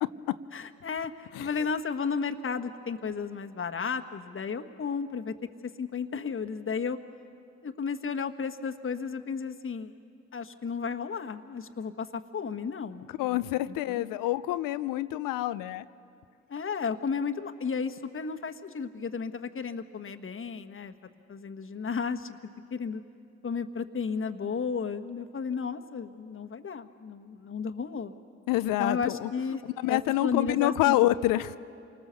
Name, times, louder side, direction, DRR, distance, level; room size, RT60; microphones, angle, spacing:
voice 1, 0.0-0.3 1.3-1.5 13.2-15.9 28.5-29.3 29.8-31.6, left 15 dB, 80° left, 14 dB, 0.6 m, -27 dB
voice 2, 0.5-5.3 5.8-7.0 7.6-9.9 10.3-14.0 16.5-20.9 21.3-22.4 22.7-23.0 23.4-28.1 28.6-31.0, left 5 dB, 40° left, 8 dB, 1.4 m, -33 dB
28.0 x 19.5 x 6.9 m, 2.5 s
supercardioid pair, 55°, 33 cm